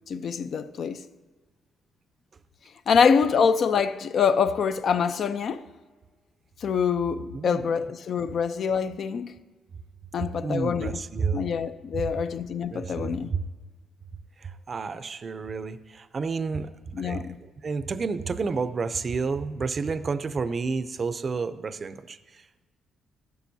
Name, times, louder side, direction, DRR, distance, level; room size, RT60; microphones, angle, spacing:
voice 1, 0.1-1.0 2.9-5.6 6.6-9.4 10.1-11.0 11.3-13.3 16.9-17.4, left 6 dB, 55° left, 0.5 m, -25 dB
voice 2, 7.3-7.8 10.4-11.5 11.9-12.0 12.7-13.5 14.4-16.7 17.0-22.6, right 4 dB, 40° right, 0.5 m, -30 dB
14.0 x 11.5 x 2.7 m
cardioid pair, 105°, 0 cm